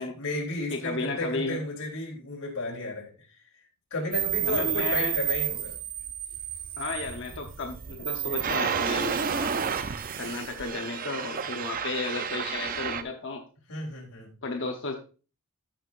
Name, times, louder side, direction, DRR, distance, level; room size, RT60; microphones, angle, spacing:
voice 1, 0.0-3.3 3.9-5.7 13.7-14.3, left 2 dB, 85° left, -1 dB, 3.3 m, -33 dB
voice 2, 0.7-1.6 4.4-5.1 6.8-9.6 10.2-13.4 14.4-15.0, left 3 dB, 55° left, 3 dB, 0.9 m, -33 dB
sound 1, 4.1-13.0, right 9 dB, 40° right, 0.5 m, -31 dB
13.5 x 5.7 x 2.5 m, 0.35 s
head